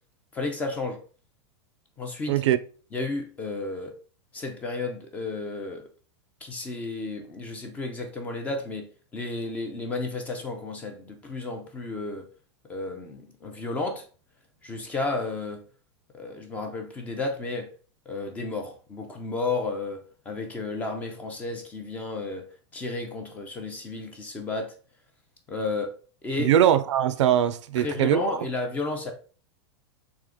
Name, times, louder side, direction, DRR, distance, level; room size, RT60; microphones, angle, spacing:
voice 1, 0.3-1.0 2.0-2.4 2.9-3.9 4.3-5.8 6.4-8.9 9.1-12.3 12.7-14.1 14.6-15.6 16.1-17.7 18.1-22.5 22.7-24.7 25.5-25.9 26.2-26.5 27.8-29.1, left 3 dB, 10° left, 0.4 m, -32 dB
voice 2, 2.3-2.6 26.4-28.2, right 10 dB, 80° right, 0.5 m, -21 dB
3.6 x 3.0 x 3.4 m
supercardioid pair, 170°, 15 cm